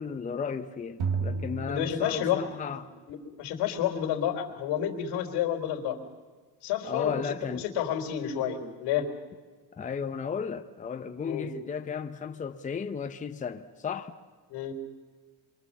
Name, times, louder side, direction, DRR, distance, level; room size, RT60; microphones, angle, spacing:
voice 1, 0.0-2.9 6.8-7.6 9.8-14.1, left 6 dB, 20° left, 0.9 m, -34 dB
sound 1, 1.0-2.8, right 4 dB, 75° right, 3.1 m, -32 dB
voice 2, 1.7-2.4 3.1-6.0 6.6-9.1 11.2-11.5 14.5-14.7, left 10 dB, 85° left, 3.8 m, -30 dB
26.5 x 24.0 x 7.3 m
cardioid pair, 155°, 39 cm